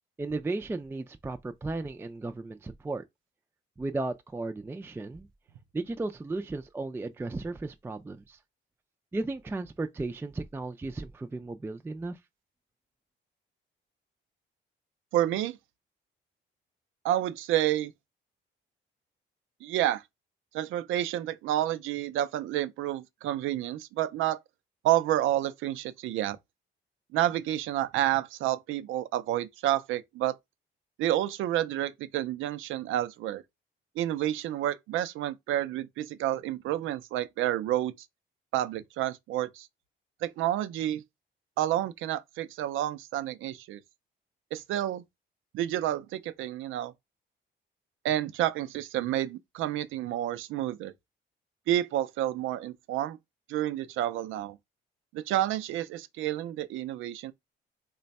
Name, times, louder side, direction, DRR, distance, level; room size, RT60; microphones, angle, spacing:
voice 1, 0.2-3.0 3.8-5.3 5.7-8.4 9.1-12.2, right 2 dB, 10° right, 0.3 m, -35 dB
voice 2, 15.1-15.6 17.0-17.9 19.6-20.0 20.5-24.4 24.8-26.4 27.1-30.4 31.0-33.4 34.0-37.9 38.5-39.7 40.2-41.0 41.6-43.8 44.5-45.0 45.5-46.9 48.0-50.9 51.7-53.2 53.5-54.6 55.1-57.3, right 13 dB, 85° right, 0.5 m, -29 dB
3.2 x 2.2 x 4.0 m
cardioid pair, 90°, 20 cm